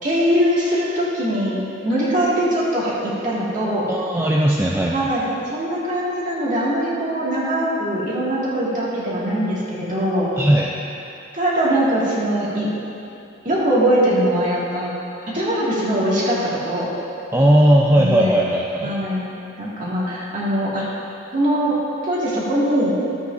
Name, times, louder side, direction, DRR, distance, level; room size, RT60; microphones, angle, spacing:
voice 1, 0.0-3.9 4.9-10.3 11.3-12.7 13.4-14.9 15.3-16.9 17.9-18.3 18.8-19.2 19.6-20.8 21.3-23.0, equal, 40° right, -7 dB, 2.0 m, -21 dB
voice 2, 3.9-5.0 10.4-10.7 17.3-19.0, right 1 dB, 10° right, -2 dB, 0.4 m, -17 dB
13.5 x 8.1 x 2.6 m, 2.7 s
head